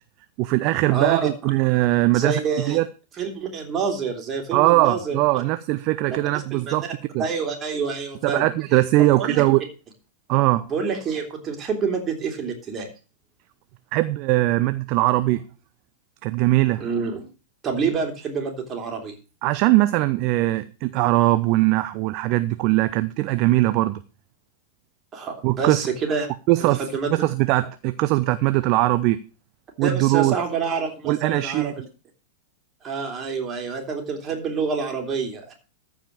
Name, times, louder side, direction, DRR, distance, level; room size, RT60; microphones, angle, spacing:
voice 1, 0.4-2.4 2.7-2.9 4.5-6.8 7.1-7.2 8.2-9.6 10.3-10.7 13.9-15.4 16.2-16.8 19.4-24.0 25.4-25.9 26.5-26.8 27.1-29.2 29.8-30.4 31.1-31.7, right 18 dB, 40° right, 12 dB, 0.6 m, -20 dB
voice 2, 0.9-1.5 2.1-2.8 3.2-5.4 6.1-6.8 7.2-9.4 10.7-12.9 16.8-17.3 17.6-19.2 25.1-26.3 26.6-27.1 29.8-31.9 32.8-35.5, right 5 dB, 25° right, 3 dB, 3.4 m, -27 dB
14.0 x 5.1 x 7.3 m, 0.35 s
figure-of-eight pair, 95°, 0 cm